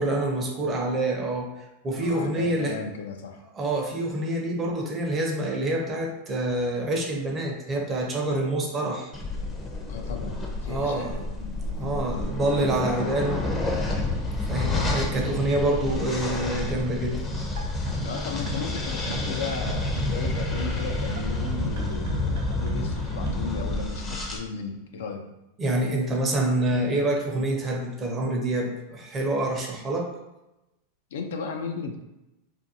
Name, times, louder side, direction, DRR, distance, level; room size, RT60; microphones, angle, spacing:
voice 1, 0.0-2.8 3.5-9.1 10.7-13.4 14.5-17.2 25.6-30.1, right 1 dB, 25° right, 1 dB, 0.6 m, -27 dB
voice 2, 2.0-3.4 9.9-12.6 12.9-13.0 18.0-25.3 31.1-32.0, left 5 dB, 75° left, 3 dB, 0.4 m, -36 dB
sound 1, 9.1-24.4, left 2 dB, 20° left, 0.5 m, -29 dB
sound 2, 17.3-23.4, right 2 dB, 75° right, 0.5 m, -35 dB
2.5 x 2.2 x 2.7 m, 0.94 s
hypercardioid pair, 105°, 0 cm